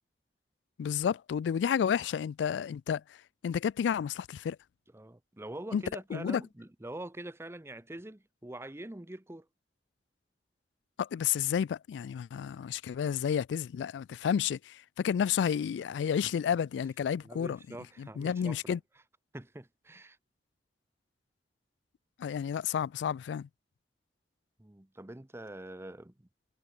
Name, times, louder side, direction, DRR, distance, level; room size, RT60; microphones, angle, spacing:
voice 1, 0.8-3.0 3.4-4.6 5.7-5.8 6.1-6.4 11.0-17.6 18.0-18.8 22.2-23.5, left 8 dB, 85° left, 0.3 m, -31 dB
voice 2, 4.9-9.5 16.2-16.3 17.2-18.8 19.3-20.2 24.6-26.3, right 1 dB, 15° right, 0.8 m, -44 dB
head